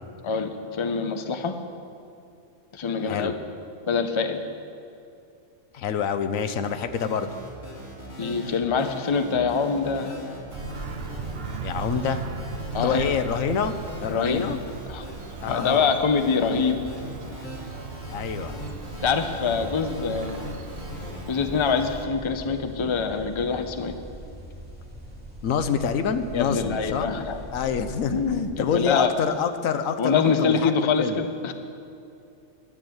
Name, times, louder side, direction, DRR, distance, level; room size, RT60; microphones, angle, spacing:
voice 1, 0.2-1.5 2.7-3.3 3.9-4.4 8.2-10.1 12.7-13.2 14.1-14.5 14.9-15.0 15.5-16.8 19.0-20.4 21.3-23.9 26.3-27.4 28.1-29.1 30.0-31.5, left 5 dB, 30° left, 7 dB, 0.6 m, -25 dB
voice 2, 3.0-3.4 5.7-7.3 11.6-12.2 12.7-13.7 14.0-14.6 15.4-15.9 18.1-18.6 25.4-27.1 27.5-30.7 31.0-31.2, left 7 dB, 80° left, 10 dB, 1.1 m, -26 dB
sound 1, 6.6-21.2, left 1 dB, 50° left, 3.5 m, -39 dB
Bird vocalization bird call bird song, 10.5-22.1, right 5 dB, 55° right, 0.8 m, -38 dB
sound 2, 18.0-28.5, equal, 5° right, 2.7 m, -42 dB
12.5 x 8.8 x 7.8 m, 2.7 s
omnidirectional pair, 1.4 m